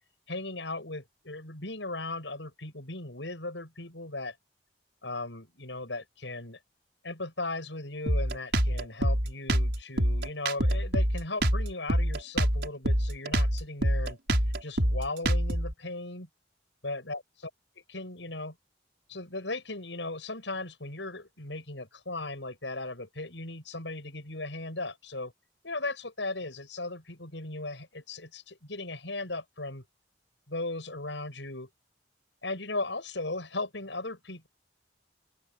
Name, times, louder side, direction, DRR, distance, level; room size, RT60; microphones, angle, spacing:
voice 1, 0.3-4.4 5.0-6.6 7.0-14.2 14.6-16.3 16.8-17.5 17.9-18.5 19.1-25.3 25.6-29.8 30.5-31.7 32.4-34.5, left 2 dB, 90° left, 7.9 m, -37 dB
Drum kit, 8.1-15.7, right 1 dB, 65° right, 6.4 m, -26 dB
open air
head